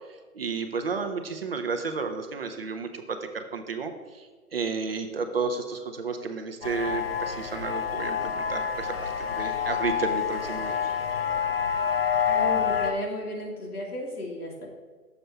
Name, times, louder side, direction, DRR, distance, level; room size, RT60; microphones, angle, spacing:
voice 1, 0.1-10.9, right 4 dB, 40° right, 6 dB, 0.5 m, -32 dB
sound 1, 6.6-12.9, left 7 dB, 40° left, 0.6 m, -28 dB
voice 2, 12.2-14.7, left 1 dB, 80° left, 0 dB, 2.2 m, -33 dB
6.8 x 5.3 x 4.4 m, 1.4 s
hypercardioid pair, 150°, 45 cm